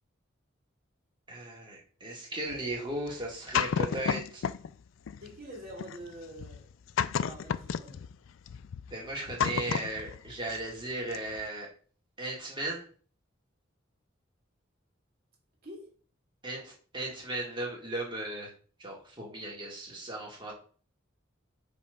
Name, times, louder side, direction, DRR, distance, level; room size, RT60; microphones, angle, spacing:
voice 1, 1.3-4.4 8.9-11.7 12.2-12.8 16.4-18.5 18.8-20.5, right 1 dB, 25° right, -2 dB, 2.2 m, -36 dB
sound 1, 2.5-4.7 5.1-10.8 11.1-11.4, left 7 dB, 75° left, 0.4 m, -33 dB
voice 2, 5.2-6.6 7.1-8.0 15.6-15.9, right 1 dB, 50° right, -2 dB, 3.1 m, -46 dB
5.4 x 4.2 x 5.2 m, 0.42 s
head